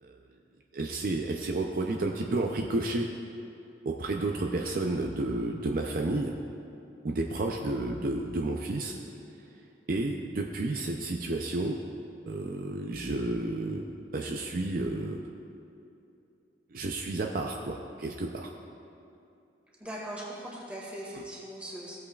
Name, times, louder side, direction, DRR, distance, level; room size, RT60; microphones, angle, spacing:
voice 1, 0.7-3.1 3.9-6.3 7.0-9.0 9.9-11.8 12.3-13.8 14.1-15.2 16.7-18.5, right 2 dB, 50° right, 1 dB, 0.5 m, -31 dB
voice 2, 19.8-22.0, right 1 dB, 5° right, -4 dB, 1.9 m, -40 dB
15.5 x 8.4 x 2.4 m, 2.7 s
head